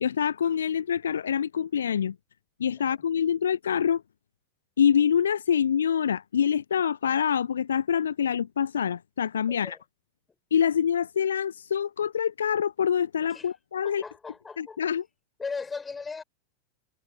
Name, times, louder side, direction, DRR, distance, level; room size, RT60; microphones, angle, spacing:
voice 1, 0.0-2.2 2.6-4.0 4.8-9.8 10.5-14.0 14.6-15.0, left 8 dB, 65° left, 0.5 m, -25 dB
voice 2, 9.5-9.8 13.3-13.5 13.8-14.8 15.4-16.2, left 4 dB, 15° left, 4.3 m, -38 dB
figure-of-eight pair, 90°, 0 cm